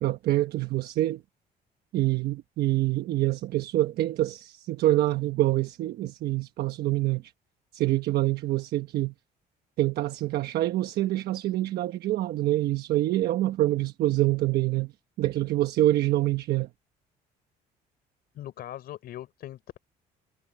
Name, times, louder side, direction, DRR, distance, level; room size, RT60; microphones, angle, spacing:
voice 1, 0.0-1.2 1.9-7.3 7.7-9.1 9.8-14.9 15.2-16.7, right 15 dB, 70° right, 1.1 m, -26 dB
voice 2, 18.3-19.8, left 12 dB, 65° left, 4.8 m, -40 dB
cardioid pair, 110°, 17 cm